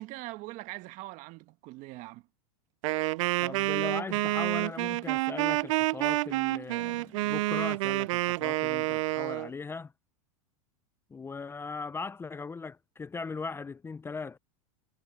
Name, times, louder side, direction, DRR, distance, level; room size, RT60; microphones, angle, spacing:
voice 1, 0.0-2.2, right 20 dB, 45° right, 1.4 m, -42 dB
Wind instrument woodwind instrument, 2.8-9.5, right 20 dB, 65° right, 0.4 m, -29 dB
voice 2, 3.4-9.9 11.1-14.4, left 4 dB, 15° left, 0.7 m, -39 dB
hypercardioid pair, 115°, 18 cm